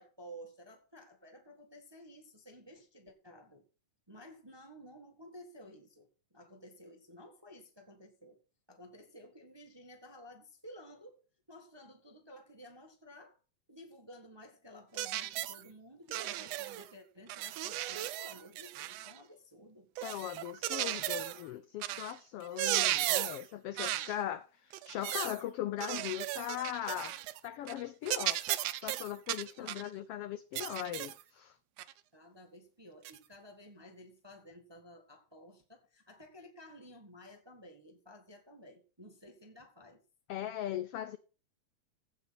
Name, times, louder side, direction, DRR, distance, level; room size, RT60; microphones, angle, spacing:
voice 1, 0.0-3.6 4.1-8.4 8.7-11.2 11.5-13.4 13.7-19.9 29.6-29.8 32.1-40.0, equal, 15° right, 0.9 m, -54 dB
sound 1, 15.0-15.6 16.1-16.9 17.3-19.2 20.0-21.4 21.8-22.1 22.4-23.5 23.8-24.2 24.7-25.4 25.8-27.4 27.7-27.8 28.1-29.9 30.6-31.2 31.8-31.9 33.0-33.2, right 14 dB, 75° right, 1.6 m, -35 dB
voice 2, 20.0-28.4 28.8-31.6 40.3-41.2, left 12 dB, 85° left, 1.3 m, -39 dB
15.5 x 5.4 x 5.8 m
omnidirectional pair, 3.4 m